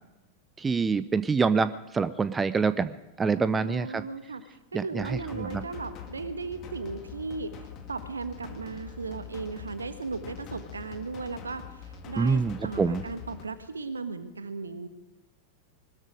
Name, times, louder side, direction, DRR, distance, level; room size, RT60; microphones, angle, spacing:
voice 1, 0.6-2.9 3.2-4.0 4.7-5.6 12.2-13.0, right 5 dB, 15° right, 15 dB, 0.5 m, -26 dB
voice 2, 3.4-4.4 4.7-7.6 7.9-14.9, right 4 dB, 75° right, 11 dB, 1.3 m, -36 dB
sound 1, 5.0-13.5, left 8 dB, 35° left, 2.0 m, -44 dB
21.0 x 13.0 x 5.0 m, 1.0 s
figure-of-eight pair, 90°, 0 cm